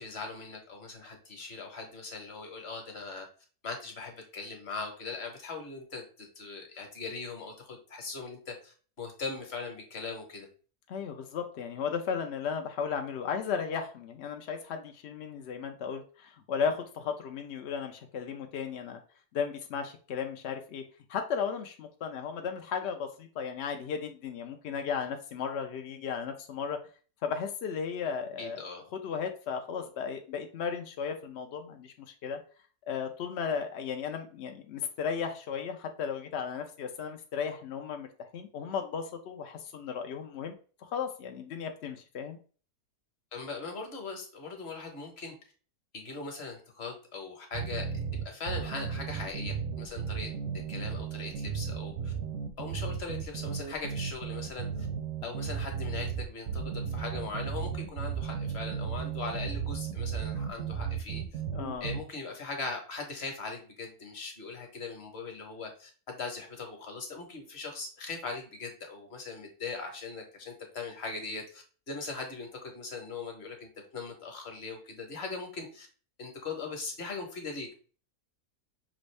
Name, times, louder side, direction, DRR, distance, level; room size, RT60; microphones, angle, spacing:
voice 1, 0.0-3.3 3.6-10.5 28.4-28.8 43.3-45.3 45.9-47.9 48.1-50.3 50.7-52.1 52.6-54.9 55.2-61.2 61.8-75.9 76.2-77.7, left 4 dB, 45° left, 3 dB, 1.2 m, -40 dB
voice 2, 10.9-19.0 19.3-20.8 21.1-26.8 27.2-28.6 28.9-32.4 32.9-40.5 40.8-42.4 61.5-61.9, left 6 dB, 75° left, 5 dB, 0.6 m, -35 dB
sound 1, 47.5-62.0, right 7 dB, 65° right, 0.8 m, -35 dB
6.0 x 2.6 x 3.2 m, 0.40 s
omnidirectional pair, 1.7 m